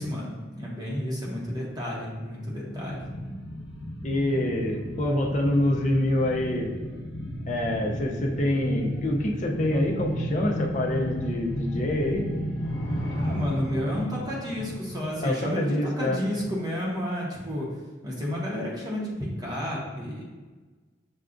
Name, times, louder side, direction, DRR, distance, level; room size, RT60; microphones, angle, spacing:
voice 1, 0.0-3.1 13.2-17.7 18.0-20.2, equal, 20° right, -4 dB, 0.9 m, -31 dB
sound 1, 2.7-15.9 16.2-16.3, equal, 90° left, 0.8 m, -33 dB
voice 2, 4.0-6.7 7.5-12.2 15.2-16.2, left 1 dB, 40° left, 0 dB, 0.6 m, -26 dB
6.8 x 2.3 x 2.5 m, 1.3 s
head